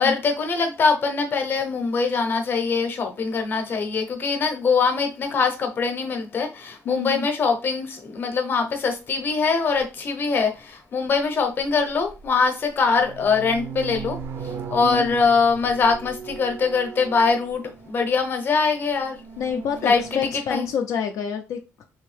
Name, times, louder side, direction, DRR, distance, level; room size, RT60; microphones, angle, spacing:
voice 1, 0.0-19.2 19.8-20.7, left 4 dB, 40° left, 0.8 m, -23 dB
voice 2, 6.9-7.3 14.8-15.1 19.4-21.8, left 6 dB, 70° left, 0.4 m, -28 dB
sound 1, 9.8-9.9 11.6-12.3 12.7-18.1 19.0-20.3, right 6 dB, 50° right, 0.5 m, -38 dB
3.4 x 2.7 x 3.3 m
cardioid pair, 175°, 6 cm